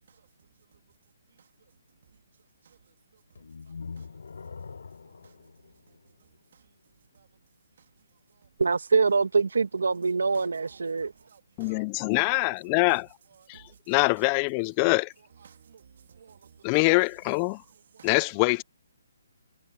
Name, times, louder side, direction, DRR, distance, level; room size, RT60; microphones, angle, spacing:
sound 1, 3.4-6.5, left 5 dB, 75° left, 7.1 m, -43 dB
voice 1, 5.0-5.3 6.5-6.6 7.1-7.3 8.3-8.5 10.0-12.2 13.5-13.8 15.4-16.8 17.9-18.1, right 7 dB, 55° right, 2.7 m, -55 dB
voice 2, 8.6-11.1, right 4 dB, 85° right, 1.7 m, -24 dB
voice 3, 11.6-13.1 13.5-15.1 16.6-17.6 18.0-18.6, left 31 dB, 25° left, 0.3 m, -24 dB
hypercardioid pair, 160°, 0 cm